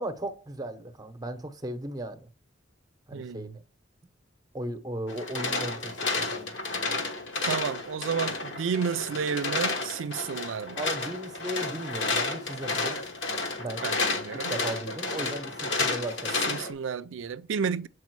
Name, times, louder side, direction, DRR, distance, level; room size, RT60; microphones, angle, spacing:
voice 1, 0.0-2.3 3.1-3.6 4.5-6.5 10.8-13.0 13.6-13.9 14.3-16.3, right 1 dB, 20° right, 0.8 m, -36 dB
voice 2, 3.1-3.6 7.4-10.8 13.8-14.5 16.5-17.9, right 6 dB, 85° right, 0.4 m, -31 dB
sound 1, 5.1-16.7, left 3 dB, 70° left, 1.2 m, -31 dB
7.2 x 4.8 x 4.6 m
head